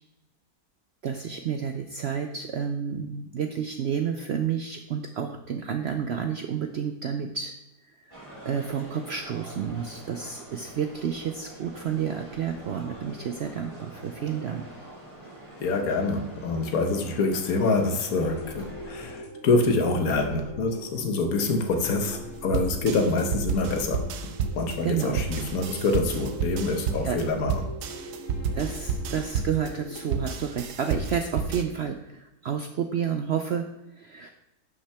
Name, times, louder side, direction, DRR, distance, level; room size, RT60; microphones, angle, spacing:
voice 1, 1.0-7.5 7.8-8.1 8.4-14.7 24.8-25.2 27.0-27.2 28.5-34.3, right 7 dB, 70° right, 6 dB, 0.6 m, -30 dB
sound 1, 8.1-19.2, right 1 dB, 20° right, 2.0 m, -45 dB
voice 2, 15.6-24.1 24.6-27.7, left 3 dB, 70° left, 5 dB, 1.4 m, -26 dB
sound 2, 18.1-30.1, left 1 dB, 35° left, 2.9 m, -42 dB
sound 3, 22.5-31.6, right 5 dB, 85° right, 1.2 m, -31 dB
11.5 x 5.7 x 3.4 m, 0.92 s
omnidirectional pair, 1.6 m